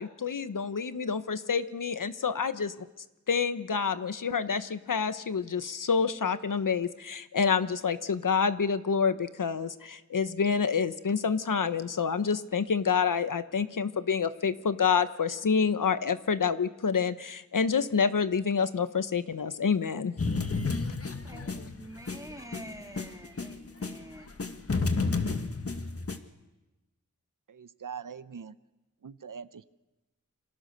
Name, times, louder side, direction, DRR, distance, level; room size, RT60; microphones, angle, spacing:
voice 1, 0.0-2.9 3.3-20.1, left 6 dB, 85° left, 12 dB, 1.1 m, -28 dB
sound 1, 20.2-24.0 24.3-26.2, left 3 dB, 45° left, 1.8 m, -31 dB
voice 2, 21.2-24.3, right 1 dB, 10° right, 3 dB, 3.3 m, -46 dB
voice 3, 27.5-28.5 29.0-29.6, right 7 dB, 80° right, 13 dB, 0.9 m, -42 dB
28.5 x 26.0 x 6.7 m, 1.0 s
wide cardioid pair, 90°, 31 cm